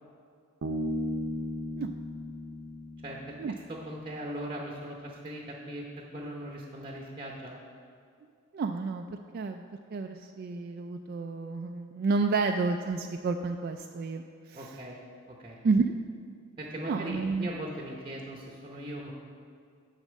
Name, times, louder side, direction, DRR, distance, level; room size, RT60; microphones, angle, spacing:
Bass guitar, 0.6-4.1, left 1 dB, 80° right, 0.7 m, -36 dB
voice 1, 3.0-3.4 3.7-7.5 14.5-15.0 15.3-15.6 16.6-19.1, right 1 dB, 25° right, -1 dB, 0.8 m, -39 dB
voice 2, 8.5-9.1 9.3-14.7 15.6-15.9 16.8-17.5, right 4 dB, 50° right, 5 dB, 0.3 m, -30 dB
9.9 x 4.2 x 6.3 m, 2.2 s
head